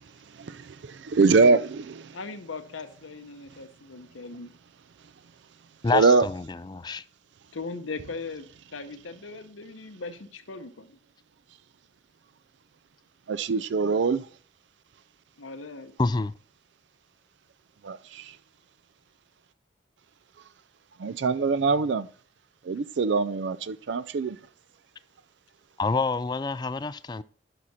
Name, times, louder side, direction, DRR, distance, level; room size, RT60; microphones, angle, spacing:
voice 1, 0.4-2.2 5.9-6.2 13.3-14.3 17.8-18.3 21.0-22.1 22.6-24.4, right 4 dB, 65° right, 0.4 m, -23 dB
voice 2, 2.1-4.5 7.5-8.5 8.7-11.0 15.4-16.0, left 3 dB, 85° left, 0.9 m, -39 dB
voice 3, 5.8-7.0 16.0-16.3 25.8-27.2, left 3 dB, 20° left, 0.3 m, -27 dB
11.0 x 5.8 x 4.2 m
head